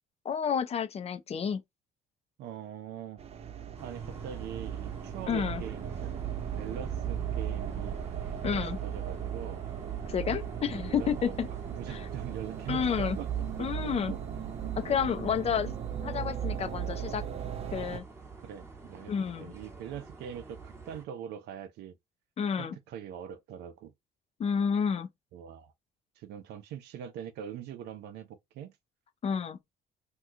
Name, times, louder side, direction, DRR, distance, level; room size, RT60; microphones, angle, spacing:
voice 1, 0.2-1.6 5.3-5.6 8.4-8.8 10.1-11.5 11.9-12.0 12.7-13.2 13.6-14.1 14.8-15.8 16.0-17.2 17.7-18.0 19.1-19.5 22.4-22.7 24.4-25.1 29.2-29.6, left 7 dB, 40° left, 0.6 m, -30 dB
voice 2, 2.4-3.2 3.8-8.0 8.5-9.6 10.7-14.2 14.9-15.0 18.4-19.1 19.4-22.0 22.6-23.9 25.3-25.7 26.2-28.8, right 9 dB, 80° right, 0.6 m, -43 dB
sound 1, 3.2-18.0, right 9 dB, 35° right, 0.5 m, -36 dB
sound 2, 3.8-21.0, right 4 dB, 15° right, 1.1 m, -49 dB
2.9 x 2.3 x 3.6 m
cardioid pair, 110°, 17 cm